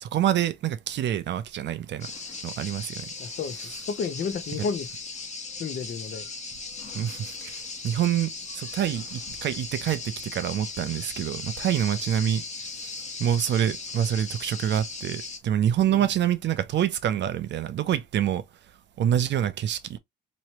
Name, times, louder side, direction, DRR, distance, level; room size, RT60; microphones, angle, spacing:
voice 1, 0.0-2.1 2.4-3.1 6.9-12.4 13.2-18.4 19.0-20.0, right 10 dB, 65° right, 0.6 m, -26 dB
sound 1, 2.0-15.4, left 3 dB, 35° left, 1.1 m, -38 dB
voice 2, 3.2-3.6 3.9-5.0 5.6-6.3 15.9-16.1, left 5 dB, 55° left, 0.9 m, -31 dB
3.0 x 3.0 x 3.0 m
cardioid pair, 90°, 20 cm